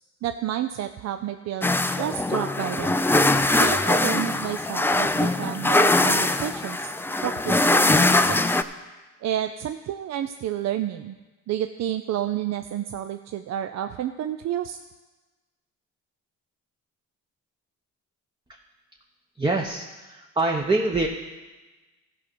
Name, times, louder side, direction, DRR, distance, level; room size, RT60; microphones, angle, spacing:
voice 1, 0.2-1.7 2.0-3.1 3.6-6.9 7.2-8.4 9.2-11.2 11.5-14.8, right 11 dB, 60° right, 8 dB, 0.5 m, -30 dB
sound 1, 1.6-8.6, left 2 dB, 10° left, 0.3 m, -22 dB
voice 2, 19.4-21.1, right 2 dB, 15° right, 1 dB, 0.8 m, -25 dB
14.0 x 5.1 x 6.1 m, 1.2 s
cardioid pair, 90°, 30 cm